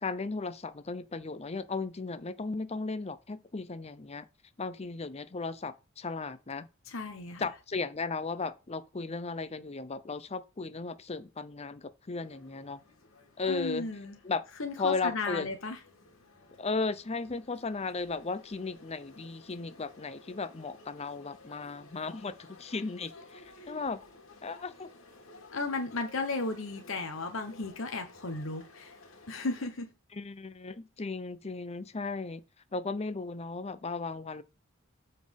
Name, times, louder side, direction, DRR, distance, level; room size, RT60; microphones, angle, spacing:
voice 1, 0.0-4.3 4.6-6.7 7.4-12.8 13.4-13.9 14.2-14.4 14.8-15.5 16.6-24.0 24.4-24.9 30.1-32.4 32.7-34.4, left 4 dB, 30° left, 0.6 m, -35 dB
voice 2, 6.9-7.5 13.5-14.2 14.6-15.8 23.6-23.7 25.5-28.9 29.3-29.9, left 3 dB, 70° left, 1.1 m, -35 dB
sound 1, 12.2-29.7, left 3 dB, 85° left, 2.3 m, -55 dB
7.4 x 4.2 x 5.2 m
head